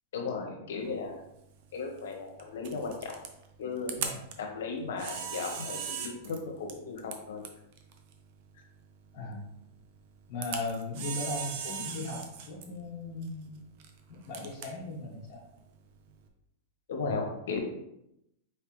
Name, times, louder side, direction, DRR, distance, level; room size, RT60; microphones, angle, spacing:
voice 1, 0.1-1.2 1.7-3.2 3.6-4.0 4.4-7.4 16.9-17.6, left 4 dB, 75° left, 2 dB, 1.1 m, -36 dB
Camera, 0.8-16.3, right 7 dB, 55° right, 0.6 m, -42 dB
voice 2, 10.3-13.6 14.1-15.4, left 2 dB, 55° left, -5 dB, 1.4 m, -38 dB
4.5 x 3.3 x 3.1 m, 0.82 s
hypercardioid pair, 125°, 0 cm